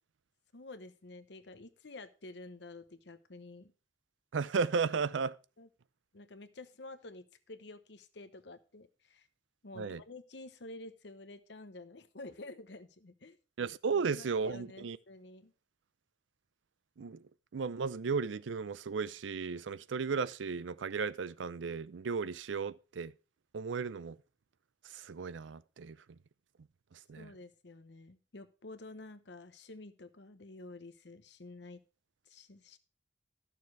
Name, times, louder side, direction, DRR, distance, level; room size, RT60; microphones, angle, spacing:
voice 1, 0.5-3.7 5.6-5.7 6.1-9.3 9.6-13.4 13.9-15.5 27.2-31.8 32.2-32.8, left 2 dB, 70° left, 0.9 m, -50 dB
voice 2, 4.3-5.4 9.8-10.0 13.6-15.0 17.0-17.2 17.5-23.1 23.5-24.2 24.8-26.0 26.9-27.3, right 5 dB, 85° right, 0.5 m, -35 dB
12.0 x 6.8 x 4.7 m
head